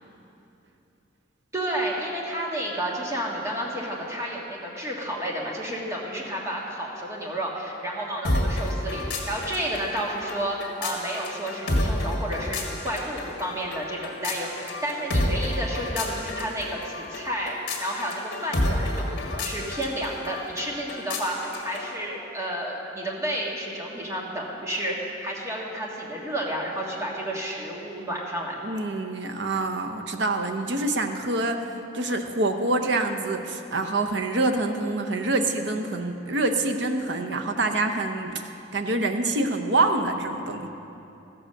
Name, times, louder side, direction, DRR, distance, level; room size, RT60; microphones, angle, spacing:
voice 1, 1.5-21.4 21.6-28.5, right 1 dB, 15° right, -3 dB, 1.6 m, -31 dB
sound 1, 8.2-22.0, left 1 dB, 55° left, 1.7 m, -30 dB
voice 2, 28.6-31.6 31.9-40.7, right 2 dB, 65° right, 5 dB, 0.8 m, -26 dB
14.0 x 7.8 x 6.5 m, 2.8 s
head